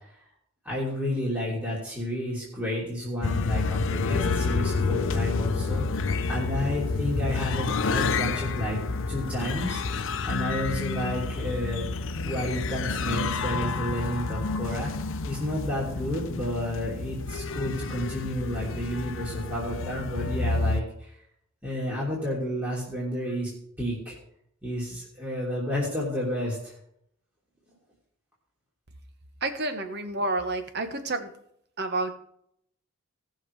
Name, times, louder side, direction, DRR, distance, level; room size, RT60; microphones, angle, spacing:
voice 1, 0.6-8.8 9.1-11.9 12.2-14.9 15.3-21.1 21.6-23.5 23.8-24.2 24.6-26.7, left 1 dB, 10° right, -6 dB, 2.9 m, -31 dB
sound 1, 3.2-20.8, left 3 dB, 60° left, 0.7 m, -29 dB
voice 2, 29.4-31.3 31.8-32.1, right 2 dB, 50° right, 8 dB, 1.4 m, -29 dB
17.5 x 6.4 x 4.8 m, 0.71 s
head